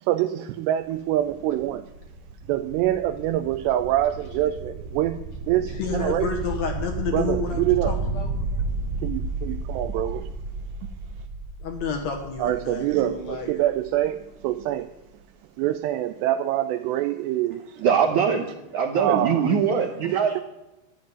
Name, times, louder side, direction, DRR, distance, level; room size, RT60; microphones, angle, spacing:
voice 1, 0.0-1.8 2.5-5.2 5.5-6.3 7.1-8.0 9.0-10.3 12.4-14.9 15.6-17.8 19.0-19.6 20.0-20.4, right 13 dB, 90° right, 2.7 m, -25 dB
sound 1, 0.8-14.5, right 3 dB, 55° right, 2.5 m, -33 dB
voice 2, 5.7-8.3 11.6-13.6, left 5 dB, 65° left, 1.8 m, -30 dB
voice 3, 17.8-18.5 18.7-20.4, right 7 dB, 70° right, 1.9 m, -22 dB
11.5 x 7.6 x 9.3 m
omnidirectional pair, 4.8 m